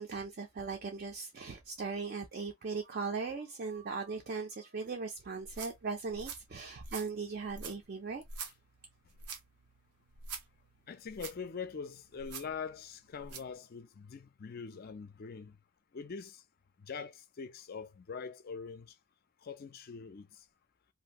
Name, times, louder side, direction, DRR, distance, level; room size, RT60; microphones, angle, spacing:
voice 1, 0.0-8.2, right 4 dB, 45° right, 0.4 m, -39 dB
sound 1, 5.3-13.5, right 5 dB, 90° right, 0.7 m, -48 dB
voice 2, 10.9-15.6 15.9-16.4 16.8-18.9 19.4-20.4, left 5 dB, 40° left, 0.4 m, -43 dB
2.6 x 2.4 x 2.8 m
head